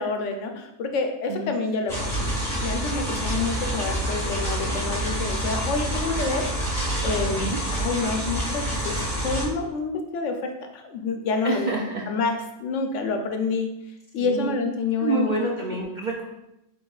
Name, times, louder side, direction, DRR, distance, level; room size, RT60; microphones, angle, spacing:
voice 1, 0.0-2.3 2.6-6.5 7.0-9.0 9.2-11.7 12.1-13.7 14.1-15.4, left 4 dB, 65° left, 5 dB, 0.9 m, -28 dB
sound 1, 1.9-9.4, right 1 dB, ahead, 1.4 m, -27 dB
voice 2, 11.4-12.1 14.2-14.6 15.0-16.2, right 3 dB, 70° right, -1 dB, 0.4 m, -27 dB
7.6 x 2.9 x 2.3 m, 0.86 s
omnidirectional pair, 1.4 m